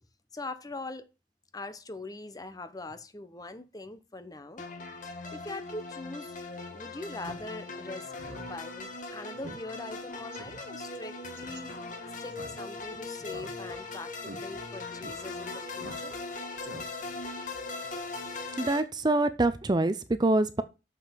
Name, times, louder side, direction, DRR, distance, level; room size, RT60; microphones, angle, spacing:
voice 1, 0.3-1.1 1.5-4.7 5.3-6.4 6.7-11.7 12.2-16.2 16.8-16.9, left 2 dB, 20° left, 0.9 m, -42 dB
sound 1, 4.6-18.8, left 3 dB, 45° left, 1.7 m, -40 dB
Speech synthesizer, 7.2-7.4 7.8-7.9 8.2-8.5 8.8-8.9 9.4-9.6 9.9-10.0 10.3-10.6 11.4-11.6 12.3-12.9 13.3-13.9 14.2-14.4 15.0-15.2 15.8-16.3 16.6-17.1, right 2 dB, 80° right, 1.5 m, -45 dB
voice 2, 18.6-20.6, right 2 dB, 25° right, 0.5 m, -25 dB
6.8 x 5.8 x 7.3 m
head